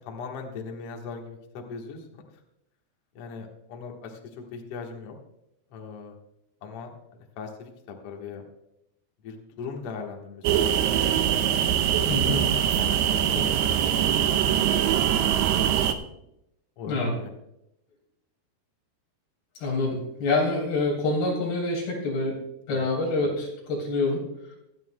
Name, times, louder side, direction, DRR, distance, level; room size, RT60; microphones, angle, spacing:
voice 1, 0.1-2.2 3.1-5.2 5.7-6.1 6.6-6.9 7.4-8.4 9.2-11.1 12.1-15.6 16.8-17.3 22.7-22.9, left 5 dB, 85° left, 1 dB, 1.3 m, -40 dB
sound 1, 10.4-15.9, right 10 dB, 85° right, 2.5 m, -23 dB
voice 2, 12.1-12.4 16.9-17.1 19.6-22.4 22.7-24.2, left 2 dB, 60° left, -2 dB, 5.2 m, -26 dB
24.0 x 9.9 x 2.2 m, 0.84 s
omnidirectional pair, 5.0 m